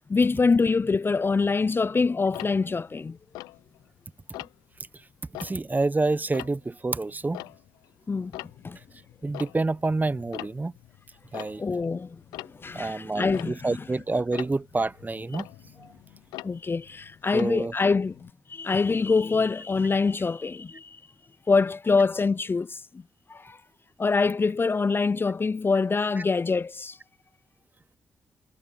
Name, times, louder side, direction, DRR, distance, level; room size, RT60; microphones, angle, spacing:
voice 1, 0.1-3.2 8.1-8.8 11.6-13.8 16.4-21.0 21.5-23.0 23.3-23.6 24.0-27.0, left 4 dB, 35° left, 0.6 m, -25 dB
Tick-tock, 2.3-4.0 4.3-4.8 5.2-7.9 8.2-18.3, left 18 dB, 85° left, 0.6 m, -44 dB
voice 2, 5.4-7.4 9.2-10.7 11.3-11.6 12.7-15.5 15.8-15.9 17.3-17.7, right 3 dB, 25° right, 1.0 m, -28 dB
hypercardioid pair, 45°, 7 cm